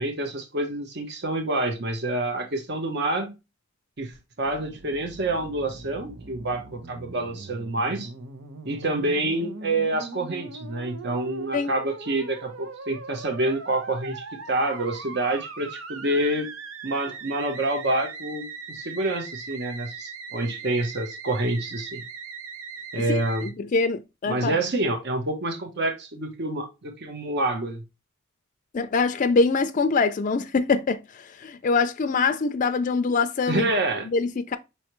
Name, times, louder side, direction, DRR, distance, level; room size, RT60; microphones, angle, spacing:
voice 1, 0.0-3.3 4.0-8.1 8.6-16.5 16.8-22.0 22.9-23.5 24.3-27.8 33.5-34.1, right 2 dB, 55° right, 1.0 m, -27 dB
Musical instrument, 4.4-23.5, right 4 dB, 80° right, 0.8 m, -40 dB
voice 2, 23.0-24.6 28.7-33.7 34.1-34.6, left 4 dB, 40° left, 0.4 m, -24 dB
5.5 x 3.2 x 3.0 m
head